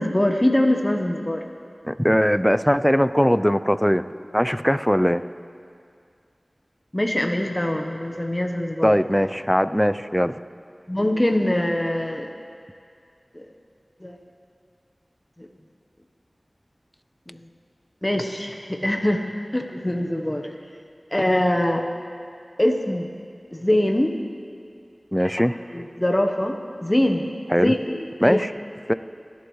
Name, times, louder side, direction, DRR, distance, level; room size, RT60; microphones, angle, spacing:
voice 1, 0.0-1.4 6.9-8.9 10.9-12.3 13.3-13.4 14.0-14.2 15.4-15.5 17.3-17.4 18.0-19.2 19.5-20.5 21.1-21.8 22.6-23.1 23.5-24.2 25.7-27.2 27.5-28.5, left 1 dB, 20° left, 3 dB, 1.0 m, -23 dB
voice 2, 1.8-4.0 4.3-5.2 8.8-10.3 25.1-25.5 27.5-27.7 28.2-28.5 28.9-29.0, equal, 5° left, 13 dB, 0.4 m, -20 dB
30.0 x 11.5 x 3.1 m, 2.3 s
wide cardioid pair, 55°, 0 cm